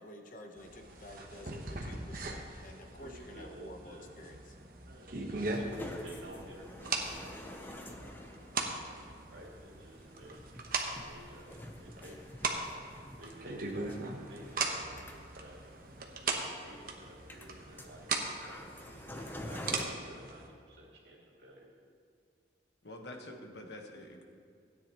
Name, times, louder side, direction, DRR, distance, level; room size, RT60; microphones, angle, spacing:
voice 1, 0.0-4.6, left 1 dB, 50° left, 4 dB, 1.0 m, -50 dB
sound 1, 0.6-20.5, right 3 dB, 50° right, 1.1 m, -40 dB
voice 2, 3.0-4.0 4.8-8.1 9.3-10.4 11.0-12.2 13.2-14.0 14.3-14.5 15.4-15.6 16.2-21.7, right 1 dB, 75° right, -3 dB, 2.5 m, -53 dB
hotel jugoslavia lift belgrad sebia, 5.5-19.9, left 1 dB, 10° left, 0.7 m, -49 dB
voice 3, 22.8-24.2, left 1 dB, 75° left, 2 dB, 1.3 m, -46 dB
16.5 x 9.7 x 3.0 m, 2.3 s
head